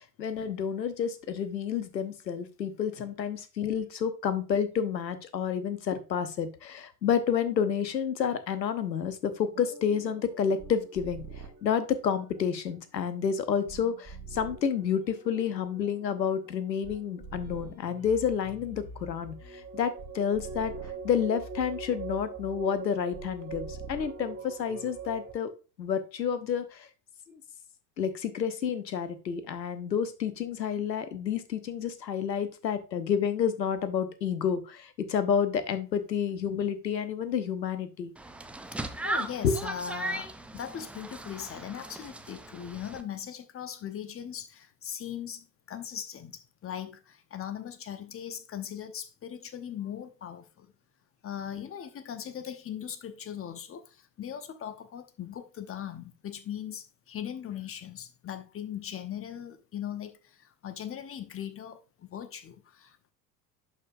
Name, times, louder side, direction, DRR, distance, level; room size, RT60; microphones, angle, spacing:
voice 1, 0.2-11.2 11.6-20.7 21.0-25.5 25.8-26.9 27.3-27.4 28.0-38.1 39.4-39.6, left 7 dB, 85° left, 1.0 m, -30 dB
sound 1, 9.5-25.3, right 4 dB, 30° right, 1.6 m, -43 dB
sound 2, 38.2-43.0, right 2 dB, 5° right, 0.4 m, -37 dB
voice 2, 38.7-50.7 51.2-63.1, left 9 dB, 25° left, 0.9 m, -39 dB
11.0 x 5.1 x 2.6 m
figure-of-eight pair, 70°, 50 cm